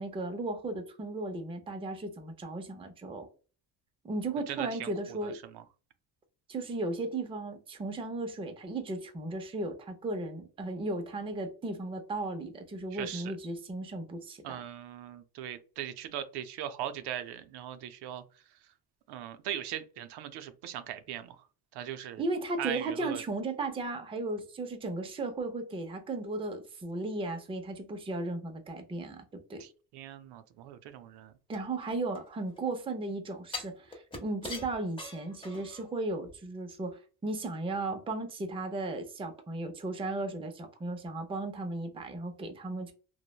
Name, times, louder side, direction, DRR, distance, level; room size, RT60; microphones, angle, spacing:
voice 1, 0.0-3.3 4.0-5.4 6.5-14.6 22.2-29.6 31.5-42.9, right 2 dB, 15° right, 0.4 m, -35 dB
voice 2, 4.5-5.6 12.9-13.3 14.4-18.2 19.1-21.5 21.7-22.2 22.6-23.2 29.6-31.3, right 10 dB, 75° right, 0.5 m, -40 dB
sound 1, 31.5-32.7 33.5-35.9 36.3-36.4, left 3 dB, 15° left, 0.7 m, -43 dB
3.1 x 2.1 x 2.3 m
cardioid pair, 125°, 40 cm